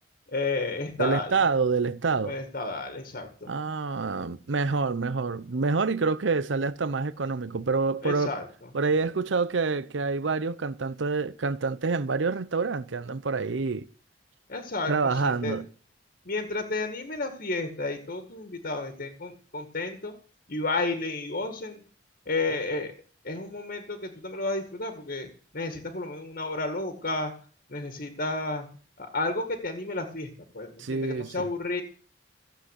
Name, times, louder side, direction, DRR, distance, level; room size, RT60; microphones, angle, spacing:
voice 1, 0.3-1.4 2.2-3.5 8.0-8.7 14.5-15.6 16.3-20.1 20.5-21.8 22.3-22.9 23.2-25.3 25.5-27.3 27.7-28.7 29.0-31.8, left 2 dB, 55° left, 2.0 m, -32 dB
voice 2, 1.0-2.4 3.5-8.3 8.7-13.9 14.9-15.7 30.8-31.5, right 4 dB, 85° right, 0.7 m, -27 dB
16.5 x 7.8 x 8.3 m
head